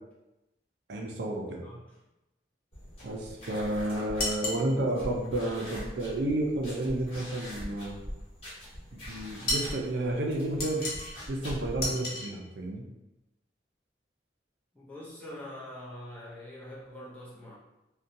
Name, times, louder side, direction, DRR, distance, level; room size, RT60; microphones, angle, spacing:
voice 1, 0.9-1.6 3.0-8.0 8.9-10.9 11.3-12.8, right 1 dB, 70° right, 0 dB, 0.4 m, -31 dB
sound 1, 2.7-11.9, equal, 35° left, 1.1 m, -43 dB
sound 2, 4.2-4.7 9.5-9.8 10.6-11.2 11.8-12.3, left 1 dB, 50° left, 0.6 m, -32 dB
voice 2, 14.7-17.5, left 1 dB, 10° left, -7 dB, 0.5 m, -44 dB
2.6 x 2.2 x 2.6 m, 0.96 s
head